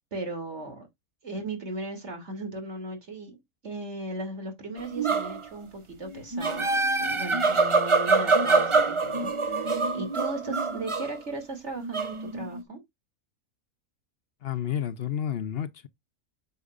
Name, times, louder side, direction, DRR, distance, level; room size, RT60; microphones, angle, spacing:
voice 1, 0.1-0.9 1.2-3.4 3.6-12.8, right 2 dB, 50° right, 3.1 m, -37 dB
sound 1, 4.8-5.5 6.0-11.2 11.8-12.6, right 3 dB, 25° right, 0.7 m, -25 dB
voice 2, 14.4-15.9, left 9 dB, 55° left, 0.7 m, -30 dB
8.2 x 7.1 x 2.5 m
omnidirectional pair, 1.5 m